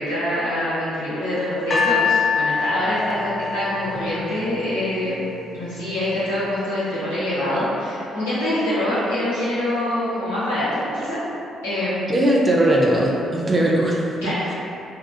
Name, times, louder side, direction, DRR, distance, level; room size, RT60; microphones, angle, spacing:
voice 1, 0.0-5.2 5.5-11.2 11.6-12.1 14.2-14.5, left 1 dB, 75° left, -12 dB, 0.9 m, -25 dB
sound 1, 1.7-4.9 5.7-5.8, left 5 dB, 35° left, 0.4 m, -24 dB
voice 2, 12.1-14.3, right 1 dB, 25° right, -3 dB, 0.4 m, -19 dB
2.8 x 2.2 x 2.4 m, 2.6 s
figure-of-eight pair, 40°, 0 cm